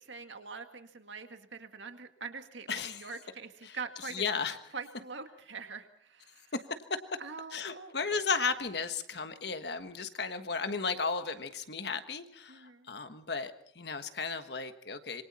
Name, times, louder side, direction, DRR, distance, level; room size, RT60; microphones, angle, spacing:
voice 1, 0.0-4.2 4.7-6.5 7.2-7.9 12.5-12.9, right 5 dB, 80° right, 7 dB, 2.0 m, -44 dB
voice 2, 2.7-3.1 3.7-3.8 4.1-4.6 7.5-15.2, left 5 dB, 60° left, 9 dB, 1.4 m, -34 dB
26.0 x 23.5 x 4.3 m, 0.65 s
head